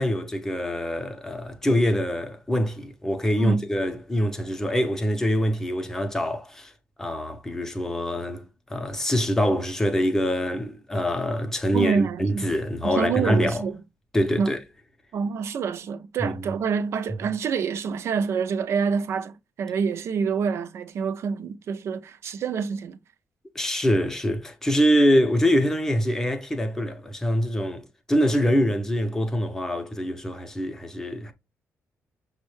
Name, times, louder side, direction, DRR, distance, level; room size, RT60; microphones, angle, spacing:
voice 1, 0.0-6.7 7.0-8.4 8.7-13.6 14.1-14.6 16.2-16.5 23.5-31.3, equal, 10° left, 0.6 m, -24 dB
voice 2, 11.7-12.5 12.8-13.8 14.4-14.5 15.1-23.0, right 6 dB, 55° right, 0.4 m, -27 dB
6.2 x 2.1 x 3.1 m
wide cardioid pair, 180°, 5 cm